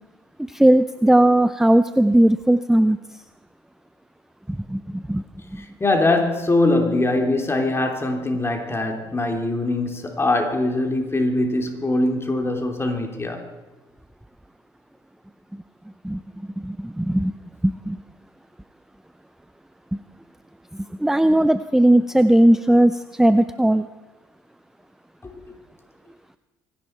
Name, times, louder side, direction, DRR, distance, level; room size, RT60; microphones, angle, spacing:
voice 1, 0.5-3.0 4.5-5.2 5.5-5.6 16.0-16.2 16.6-17.3 17.6-18.0 20.7-23.9, right 1 dB, 5° right, 0.5 m, -18 dB
voice 2, 5.6-13.4 25.2-25.3, left 2 dB, 20° left, 3.0 m, -22 dB
25.0 x 11.0 x 4.4 m
hypercardioid pair, 55°, 11 cm